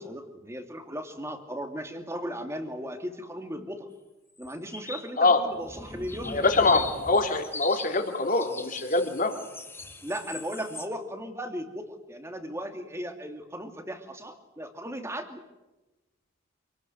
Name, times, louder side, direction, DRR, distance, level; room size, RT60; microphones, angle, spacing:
voice 1, 0.0-3.9 4.4-6.9 10.0-15.4, equal, 15° right, 6 dB, 2.6 m, -37 dB
sound 1, 4.4-5.1 5.5-10.9, left 3 dB, 10° left, 2.3 m, -40 dB
voice 2, 6.3-9.3, left 3 dB, 40° left, 5 dB, 3.2 m, -24 dB
27.5 x 19.5 x 9.4 m, 1.0 s
head